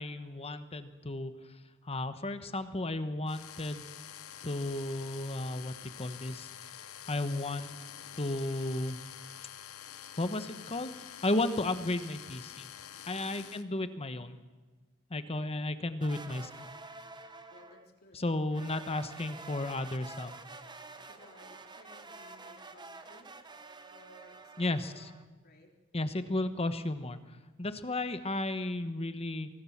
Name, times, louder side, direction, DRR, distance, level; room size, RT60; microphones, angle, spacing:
voice 1, 0.0-1.3 1.8-3.9 4.4-6.5 7.0-7.7 8.2-9.0 10.2-12.7 13.0-14.4 15.1-16.7 18.1-20.3 24.6-25.1 25.9-29.5, left 2 dB, 30° left, 10 dB, 1.1 m, -34 dB
sound 1, 3.3-13.6, left 10 dB, 75° left, 1.1 m, -47 dB
sound 2, 16.0-17.9 18.5-25.2, right 3 dB, 20° right, 1.1 m, -49 dB
voice 2, 17.5-18.2 20.7-23.3 23.9-25.1 25.4-25.7, left 1 dB, 45° left, 2 dB, 3.4 m, -59 dB
25.0 x 18.0 x 7.3 m, 1.3 s
head